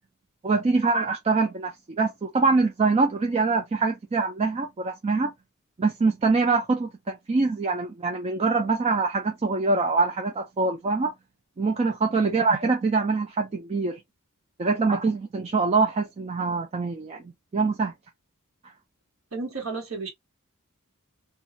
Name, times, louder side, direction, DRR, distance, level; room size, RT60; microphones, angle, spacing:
voice 1, 0.4-5.3 5.8-11.1 11.6-14.0 14.6-17.2 17.5-17.9, right 4 dB, 30° right, 0.4 m, -24 dB
voice 2, 19.3-20.1, right 4 dB, 75° right, 1.2 m, -33 dB
3.0 x 2.3 x 2.6 m
head